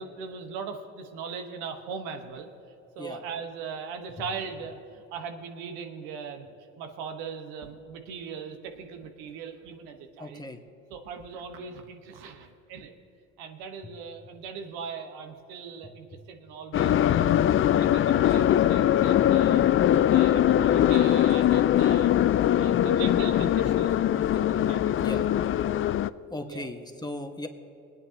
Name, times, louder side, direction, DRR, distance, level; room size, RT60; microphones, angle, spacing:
voice 1, 0.0-2.5 2.9-6.5 6.8-10.4 10.9-12.9 13.4-17.3 17.8-19.7 20.1-22.2 22.6-25.2 26.5-26.7, right 6 dB, 75° right, 6 dB, 1.4 m, -39 dB
voice 2, 10.2-10.6 17.3-17.5 22.2-22.3 25.0-25.3 26.3-27.5, left 1 dB, 10° left, 4 dB, 1.5 m, -37 dB
sound 1, 16.7-26.1, left 11 dB, 35° left, 0.4 m, -22 dB
22.5 x 9.6 x 2.9 m, 2.8 s
hypercardioid pair, 60°, 39 cm